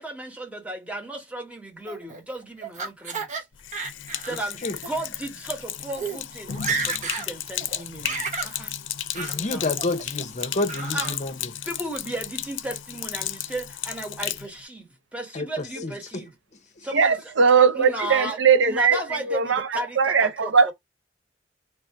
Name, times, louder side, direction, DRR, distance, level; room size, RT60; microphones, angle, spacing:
voice 1, 0.0-3.4 4.2-6.6 6.8-8.7 9.3-9.7 10.8-11.2 11.6-16.4 16.8-17.3 17.7-20.7, right 1 dB, 5° right, 1.2 m, -35 dB
Laughter, 1.9-3.4 3.7-4.4 4.8-4.9 5.6-5.7 5.9-6.2 6.5-7.3 7.6-8.5 9.1-9.4 9.8-10.2 10.7-11.2, right 4 dB, 40° right, 1.0 m, -32 dB
Sink (filling or washing), 3.5-14.5, left 11 dB, 90° left, 0.5 m, -34 dB
voice 2, 9.1-11.4 15.3-15.5 15.8-15.9, left 2 dB, 40° left, 0.7 m, -28 dB
voice 3, 16.9-19.0 19.3-19.7 20.0-20.7, right 6 dB, 75° right, 0.6 m, -19 dB
3.4 x 2.5 x 4.5 m
head